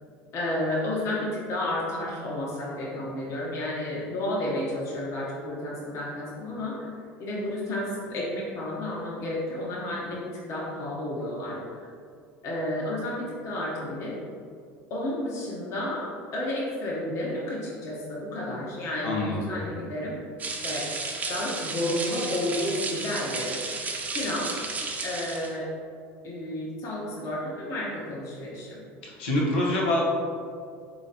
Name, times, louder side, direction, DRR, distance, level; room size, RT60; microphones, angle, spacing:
voice 1, 0.3-6.9 7.2-11.9 12.4-14.2 14.9-20.9 21.3-23.8 24.1-24.5 25.0-25.7 26.2-28.8, left 1 dB, 50° left, -5 dB, 1.1 m, -31 dB
voice 2, 19.0-19.3 29.0-30.0, left 1 dB, 90° left, -3 dB, 1.0 m, -25 dB
sound 1, 20.4-25.6, right 3 dB, 25° right, 0.6 m, -33 dB
4.0 x 3.1 x 4.0 m, 2.3 s
supercardioid pair, 105°, 6 cm